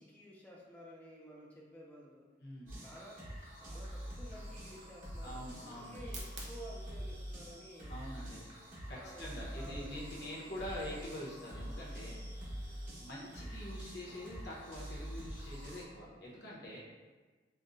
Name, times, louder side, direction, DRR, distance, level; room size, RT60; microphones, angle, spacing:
voice 1, 0.0-2.3 2.8-3.3 3.6-8.0 8.9-10.8, equal, 10° left, -5 dB, 0.4 m, -53 dB
voice 2, 2.4-2.7 5.2-5.9 7.9-8.4 8.9-16.8, left 1 dB, 65° left, -5 dB, 0.8 m, -45 dB
sound 1, 2.7-15.8, equal, 45° right, 1.1 m, -45 dB
sound 2, 3.4-15.0, right 3 dB, 75° right, 0.8 m, -59 dB
5.2 x 2.1 x 2.5 m, 1.3 s
head